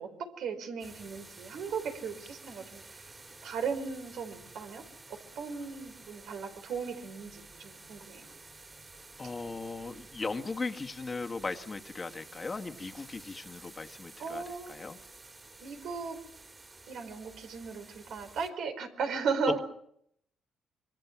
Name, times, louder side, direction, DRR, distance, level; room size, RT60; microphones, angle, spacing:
voice 1, 0.0-3.1 3.4-4.8 5.1-8.3 13.3-13.4 14.2-14.7 15.6-16.2 16.9-19.6, right 5 dB, 75° right, 7 dB, 4.5 m, -36 dB
sound 1, 0.8-18.5, right 3 dB, 25° right, 3.5 m, -52 dB
voice 2, 9.2-14.4 14.7-15.0, left 3 dB, 30° left, 7 dB, 1.8 m, -38 dB
26.5 x 23.0 x 6.0 m, 0.71 s
cardioid pair, 90°, 0 cm